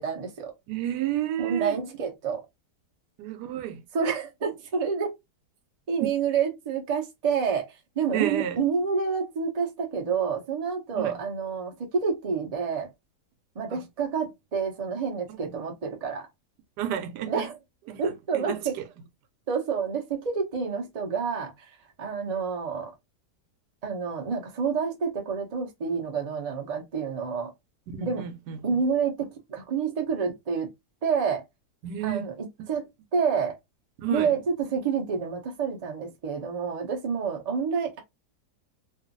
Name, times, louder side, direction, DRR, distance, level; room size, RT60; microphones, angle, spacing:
voice 1, 0.0-0.5 1.4-2.4 3.9-5.1 5.9-7.7 8.0-12.9 13.5-16.3 17.3-17.5 18.0-18.7 19.5-21.7 22.0-22.9 23.8-27.5 28.0-28.2 28.6-30.7 31.0-31.4 32.0-32.3 32.7-32.9 33.1-33.6 34.1-38.0, right 6 dB, 65° right, 0.3 m, -28 dB
voice 2, 0.7-1.8 3.2-3.8 6.0-6.1 8.1-8.6 10.9-11.2 13.7-13.8 15.3-15.6 16.8-17.5 17.9-18.8 27.9-28.8 31.8-32.3 32.6-32.7 34.0-34.3, right 11 dB, 80° right, 1.1 m, -32 dB
2.6 x 2.4 x 2.5 m
omnidirectional pair, 1.8 m